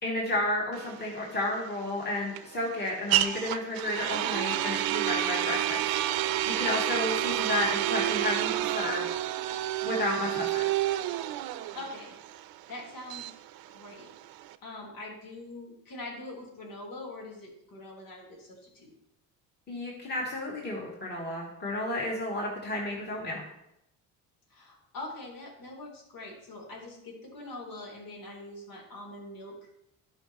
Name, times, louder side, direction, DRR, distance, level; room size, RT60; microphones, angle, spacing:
voice 1, 0.0-5.9 6.2-9.1 9.8-10.7 19.7-23.4, left 1 dB, 25° left, -3 dB, 2.6 m, -32 dB
sound 1, 0.7-14.5, right 13 dB, 75° right, 0.7 m, -30 dB
voice 2, 11.7-12.2 12.7-13.3 13.7-14.1 14.6-18.9 24.5-29.6, left 2 dB, 65° left, -2 dB, 3.9 m, -43 dB
16.0 x 5.5 x 3.0 m, 0.81 s
cardioid pair, 100°, 37 cm